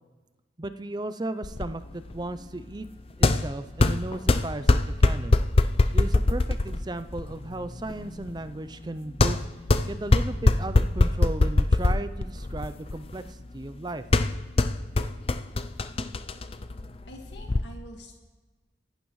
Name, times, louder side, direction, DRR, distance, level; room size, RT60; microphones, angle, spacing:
voice 1, 0.6-2.9 3.2-5.4 5.9-9.4 9.9-14.1, right 2 dB, 20° right, 12 dB, 0.5 m, -35 dB
sound 1, 1.4-17.6, left 2 dB, 30° left, 0.4 m, -24 dB
voice 2, 17.1-18.2, equal, 70° left, 1 dB, 1.8 m, -45 dB
24.0 x 11.5 x 3.2 m, 1.3 s
head